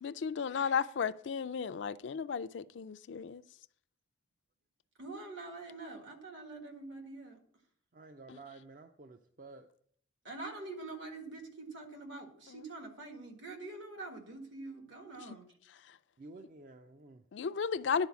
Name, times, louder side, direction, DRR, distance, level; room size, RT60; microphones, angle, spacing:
voice 1, 0.0-3.4 8.3-8.4 12.5-12.6 17.3-18.1, left 6 dB, 70° left, 13 dB, 0.4 m, -34 dB
voice 2, 5.0-7.4 10.2-15.5, right 2 dB, 70° right, 3 dB, 1.7 m, -45 dB
voice 3, 7.9-9.7 16.2-17.2, right 3 dB, 45° right, 7 dB, 0.4 m, -52 dB
10.5 x 4.0 x 7.0 m, 0.63 s
head